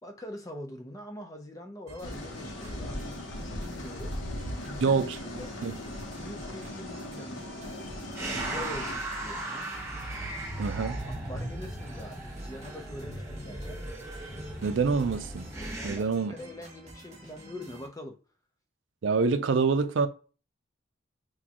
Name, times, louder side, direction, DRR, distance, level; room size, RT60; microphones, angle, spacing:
voice 1, 0.0-4.1 4.6-5.5 6.2-7.8 8.4-9.7 11.2-13.8 15.8-18.2, left 1 dB, 20° left, 0.6 m, -44 dB
sound 1, 1.9-17.9, right 1 dB, 35° right, 1.2 m, -50 dB
sound 2, 2.0-9.0, left 1 dB, 80° left, 0.9 m, -38 dB
voice 2, 4.8-5.7 10.6-11.0 14.6-15.5 15.8-16.3 19.0-20.1, right 4 dB, 75° right, 0.4 m, -26 dB
sound 3, 8.1-16.0, right 1 dB, 15° right, 1.1 m, -37 dB
6.2 x 2.3 x 2.9 m
head